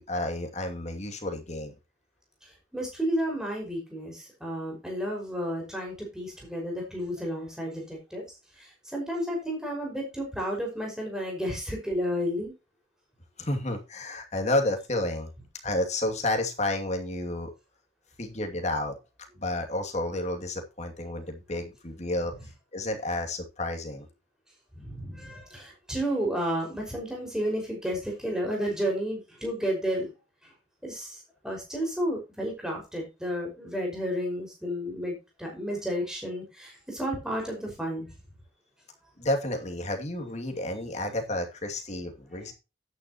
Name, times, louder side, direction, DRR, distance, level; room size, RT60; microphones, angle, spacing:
voice 1, 0.0-1.7 13.4-15.3 15.6-17.5 18.2-19.0 19.4-22.3 22.7-24.1 39.2-42.5, left 1 dB, 40° left, 4 dB, 2.5 m, -31 dB
voice 2, 2.7-8.2 8.5-12.5 24.8-30.1 30.8-38.1, equal, 5° right, -1 dB, 5.4 m, -32 dB
12.5 x 9.8 x 3.0 m, 0.27 s
head